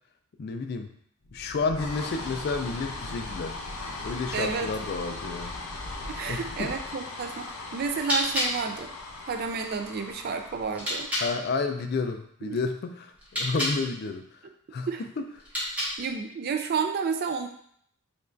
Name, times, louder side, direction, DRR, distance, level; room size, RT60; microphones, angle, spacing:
voice 1, 0.4-0.9 1.3-3.6 4.0-5.6 6.3-6.7 11.2-14.2 14.7-14.9 15.2-15.3, left 4 dB, 45° left, 6 dB, 0.3 m, -31 dB
sound 1, 1.2-11.7, left 2 dB, 85° left, 0.6 m, -39 dB
voice 2, 4.3-4.7 6.1-8.9 9.3-11.1 12.5-12.6 14.9-15.0 16.0-17.5, right 5 dB, 45° right, 6 dB, 0.3 m, -31 dB
sound 2, 7.9-11.3 13.1-13.8 15.3-16.2, left 1 dB, 5° right, 0.9 m, -32 dB
5.1 x 2.4 x 2.5 m, 0.66 s
head